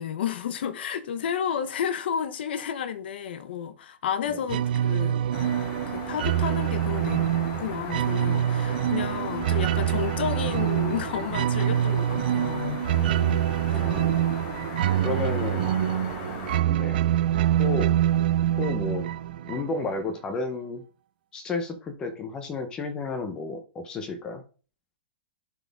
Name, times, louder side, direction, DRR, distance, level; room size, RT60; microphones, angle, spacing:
voice 1, 0.0-5.5 5.9-7.3 7.6-13.9 18.5-18.6, left 8 dB, 65° left, 1.0 m, -32 dB
sound 1, 4.5-20.0, right 11 dB, 55° right, 0.4 m, -25 dB
sound 2, 5.3-16.6, left 6 dB, 30° left, 1.1 m, -39 dB
voice 2, 13.7-14.1 15.0-15.7 16.7-17.0 17.6-17.9 18.6-19.1 19.5-20.8 21.3-24.4, left 3 dB, 15° left, 0.8 m, -32 dB
11.5 x 4.0 x 3.5 m
supercardioid pair, 175°, 6 cm